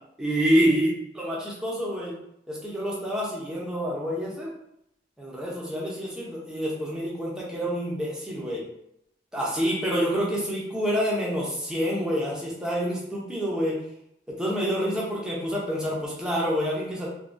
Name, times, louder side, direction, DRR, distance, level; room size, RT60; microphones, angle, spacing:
voice 1, 0.2-2.1 2.5-4.5 5.2-8.6 9.3-13.8 14.3-17.1, equal, 5° right, -5 dB, 0.7 m, -27 dB
3.3 x 2.3 x 2.5 m, 0.78 s
head